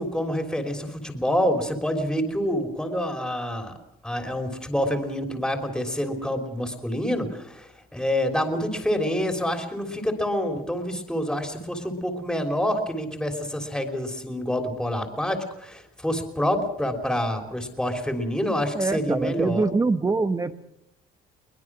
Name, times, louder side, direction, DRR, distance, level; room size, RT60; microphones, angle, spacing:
voice 1, 0.0-3.7 4.0-19.6, equal, 5° left, 4 dB, 3.3 m, -27 dB
voice 2, 18.7-20.5, right 3 dB, 20° right, 11 dB, 1.1 m, -24 dB
22.5 x 20.5 x 6.2 m, 0.83 s
cardioid pair, 110°, 17 cm